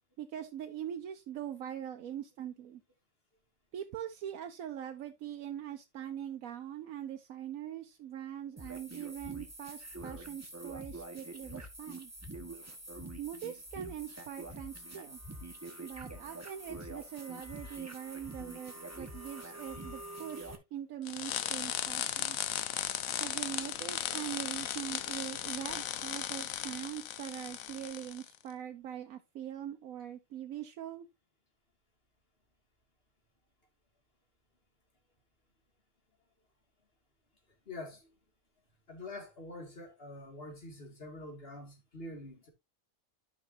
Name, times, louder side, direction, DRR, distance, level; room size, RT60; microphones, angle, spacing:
voice 1, 0.2-2.8 3.7-12.1 13.2-15.2 15.8-22.4 23.2-31.1, right 10 dB, 90° right, 1.1 m, -42 dB
sound 1, 8.6-20.6, right 1 dB, 10° right, 1.2 m, -46 dB
sound 2, 21.1-28.3, left 10 dB, 85° left, 1.1 m, -36 dB
voice 2, 37.7-38.1 38.9-42.5, left 2 dB, 45° left, 2.4 m, -45 dB
12.5 x 5.7 x 2.6 m
omnidirectional pair, 1.4 m